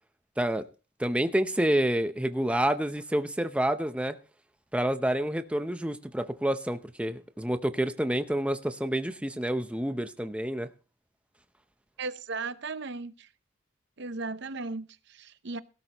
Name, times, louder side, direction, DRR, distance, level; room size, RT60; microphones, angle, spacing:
voice 1, 1.0-4.2 4.7-10.7, right 1 dB, 5° right, 0.6 m, -28 dB
voice 2, 12.0-13.3 14.0-15.6, right 3 dB, 60° right, 0.7 m, -36 dB
17.5 x 12.5 x 2.9 m
head